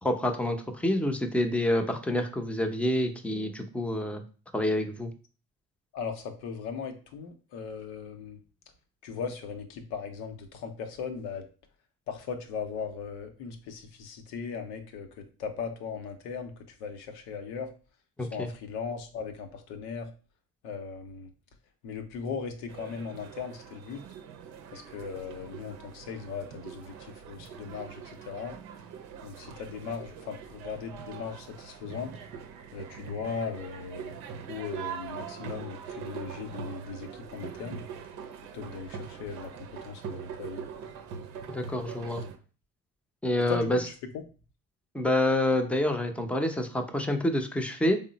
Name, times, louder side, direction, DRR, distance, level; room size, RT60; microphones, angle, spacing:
voice 1, 0.0-4.2 4.5-5.1 18.2-18.5 41.5-42.2 43.2-43.8 44.9-48.0, left 1 dB, 5° left, 5 dB, 0.6 m, -27 dB
voice 2, 5.9-8.4 9.0-11.5 12.1-17.7 18.2-20.1 20.6-21.3 21.8-24.0 24.7-28.6 29.2-32.2 32.7-34.2 34.5-37.8 38.5-40.7 43.5-43.9, left 5 dB, 80° left, 5 dB, 0.7 m, -38 dB
sound 1, 22.7-42.4, right 7 dB, 75° right, 0.6 m, -43 dB
3.6 x 2.0 x 3.9 m, 0.37 s
supercardioid pair, 60°, 38 cm